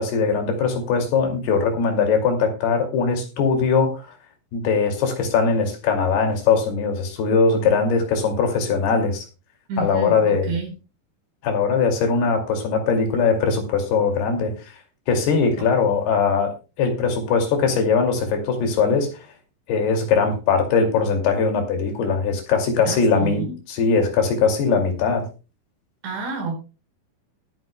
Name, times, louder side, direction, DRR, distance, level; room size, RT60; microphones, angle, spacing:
voice 1, 0.0-4.1 4.5-9.2 9.8-10.5 11.4-14.5 15.1-16.5 16.8-19.1 19.7-25.3, left 5 dB, 70° left, 4 dB, 4.4 m, -20 dB
voice 2, 9.7-10.7 15.6-15.7 22.8-23.6 26.0-26.5, right 3 dB, 85° right, 2 dB, 6.9 m, -29 dB
20.5 x 9.7 x 2.2 m, 0.30 s
omnidirectional pair, 4.9 m